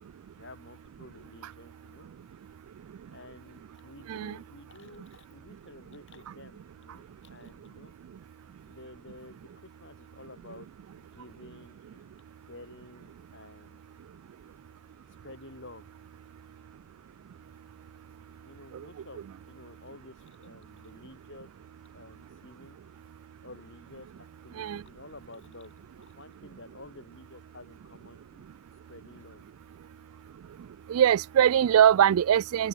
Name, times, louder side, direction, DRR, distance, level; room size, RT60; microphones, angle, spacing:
voice 1, 0.3-2.1 3.1-7.9 8.7-10.7 11.0-12.1 12.5-13.8 15.2-15.9 18.4-21.5 21.9-22.8 23.4-28.5 28.9-29.4 32.6-32.7, left 2 dB, 60° left, 7.7 m, -51 dB
voice 2, 30.9-32.7, right 9 dB, 80° right, 0.3 m, -22 dB
open air
head